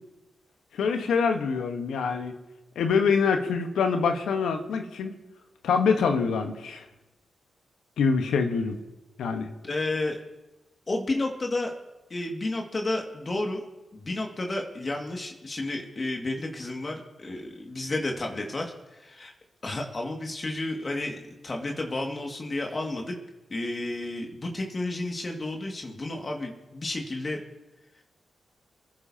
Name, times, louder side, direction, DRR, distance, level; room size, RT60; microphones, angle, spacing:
voice 1, 0.7-2.3 2.7-5.1 5.6-6.8 8.0-8.8 9.2-9.5, left 5 dB, 80° left, 5 dB, 1.2 m, -25 dB
voice 2, 9.6-10.2 10.9-11.7 12.1-13.6 13.9-19.3 19.6-21.2 21.4-23.2 23.5-27.4, left 2 dB, 45° left, 1 dB, 2.1 m, -31 dB
27.0 x 10.5 x 2.8 m, 1.0 s
supercardioid pair, 40°, 0 cm